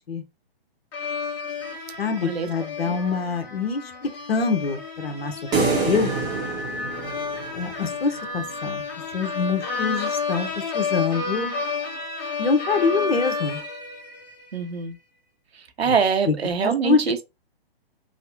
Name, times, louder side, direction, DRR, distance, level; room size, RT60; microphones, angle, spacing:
sound 1, 0.9-14.6, left 4 dB, 40° left, 1.1 m, -31 dB
voice 1, 2.0-6.1 7.5-8.8 9.1-10.5 10.7-11.5 12.4-13.6 15.9-16.0 16.3-16.4 16.6-17.2, left 5 dB, 75° left, 0.9 m, -25 dB
sound 2, 5.5-7.9, right 4 dB, 15° right, 0.8 m, -26 dB
voice 2, 14.5-15.0 15.8-17.2, right 6 dB, 80° right, 0.8 m, -24 dB
3.1 x 2.1 x 2.9 m
figure-of-eight pair, 135°, 31 cm